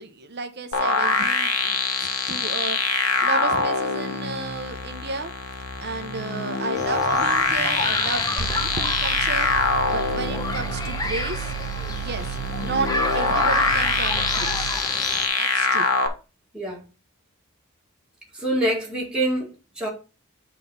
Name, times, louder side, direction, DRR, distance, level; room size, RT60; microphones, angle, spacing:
voice 1, 0.0-2.8 3.2-5.3 5.8-9.5 9.9-11.5 11.9-12.9 13.1-14.7 15.4-15.9, right 3 dB, 50° right, 0.9 m, -33 dB
sound 1, 0.7-16.1, left 4 dB, 85° left, 1.5 m, -24 dB
sound 2, 6.8-15.3, left 2 dB, 15° left, 1.0 m, -30 dB
sound 3, 8.4-14.8, right 11 dB, 85° right, 0.7 m, -33 dB
voice 2, 18.3-19.9, right 1 dB, 5° right, 1.9 m, -26 dB
7.9 x 3.8 x 5.4 m
head